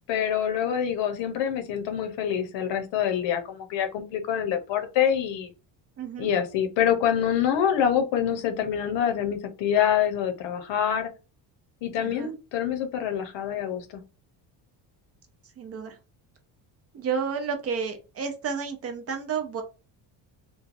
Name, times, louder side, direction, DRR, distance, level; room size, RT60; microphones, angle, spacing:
voice 1, 0.1-5.5 6.2-11.1 11.8-14.0, left 9 dB, 80° left, 7 dB, 0.8 m, -26 dB
voice 2, 6.0-6.3 12.0-12.3 15.6-16.0 16.9-19.6, right 6 dB, 35° right, 5 dB, 0.4 m, -31 dB
3.0 x 2.3 x 2.5 m, 0.32 s
cardioid pair, 180°, 43 cm